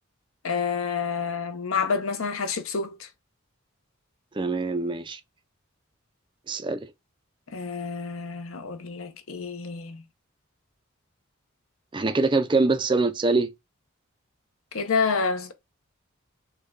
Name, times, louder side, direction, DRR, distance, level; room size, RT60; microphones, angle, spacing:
voice 1, 0.4-3.1 7.5-10.0 14.7-15.5, left 5 dB, 75° left, 0.7 m, -28 dB
voice 2, 4.3-5.2 6.5-6.9 11.9-13.5, right 3 dB, 20° right, 0.4 m, -24 dB
6.4 x 2.2 x 2.3 m
head